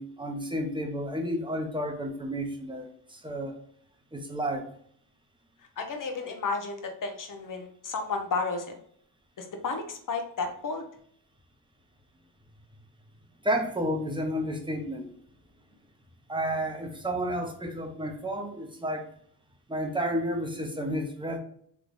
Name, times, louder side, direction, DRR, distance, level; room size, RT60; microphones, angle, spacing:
voice 1, 0.0-3.6 4.1-4.7 13.4-15.1 16.3-19.1 19.7-21.4, equal, 10° right, 2 dB, 0.9 m, -31 dB
voice 2, 5.8-8.7 9.4-10.8, left 4 dB, 50° left, 4 dB, 0.9 m, -32 dB
3.3 x 3.3 x 2.5 m, 0.62 s
cardioid pair, 80°, 40 cm